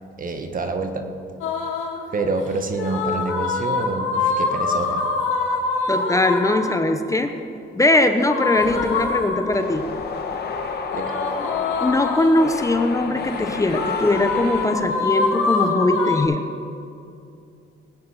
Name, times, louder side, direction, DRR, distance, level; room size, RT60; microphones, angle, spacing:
voice 1, 0.2-1.0 2.1-5.0 10.9-11.1, right 3 dB, 45° right, 6 dB, 1.6 m, -27 dB
sound 1, 1.4-2.0 2.7-6.9 8.2-9.8 10.9-12.6 13.7-16.2, left 4 dB, 85° left, 2.3 m, -24 dB
voice 2, 5.9-7.3 7.8-9.8 11.8-16.4, left 2 dB, 15° left, 7 dB, 0.9 m, -20 dB
sound 2, 8.6-14.9, left 5 dB, 55° left, 1.7 m, -31 dB
19.5 x 9.4 x 5.8 m, 2.5 s
cardioid pair, 90°, 20 cm